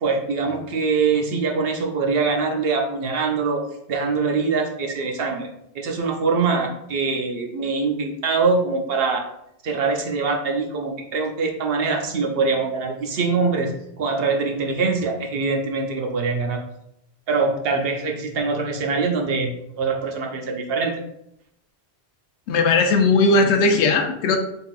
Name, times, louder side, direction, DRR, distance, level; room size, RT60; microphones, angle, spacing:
voice 1, 0.0-3.6 3.9-5.5 5.7-9.2 9.6-16.6 17.3-20.9, right 4 dB, 65° right, 2 dB, 0.7 m, -23 dB
voice 2, 22.5-24.4, left 3 dB, 80° left, 5 dB, 0.9 m, -17 dB
3.8 x 3.5 x 2.4 m, 0.80 s
omnidirectional pair, 1.1 m